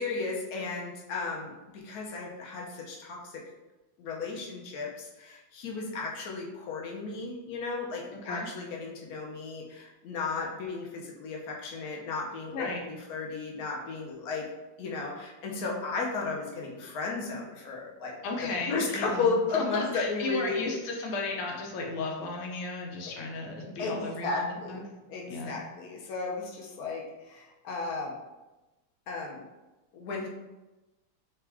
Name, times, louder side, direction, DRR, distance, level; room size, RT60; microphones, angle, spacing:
voice 1, 0.0-3.4 4.0-14.5 14.8-18.2 18.7-20.7 23.8-24.8 25.1-28.1 29.1-29.5 29.9-30.3, left 4 dB, 60° left, -2 dB, 1.0 m, -34 dB
voice 2, 8.1-8.5 12.5-12.8 18.2-24.8 25.3-25.5, left 3 dB, 80° left, 0 dB, 1.7 m, -34 dB
5.9 x 2.4 x 3.4 m, 1.1 s
omnidirectional pair, 2.4 m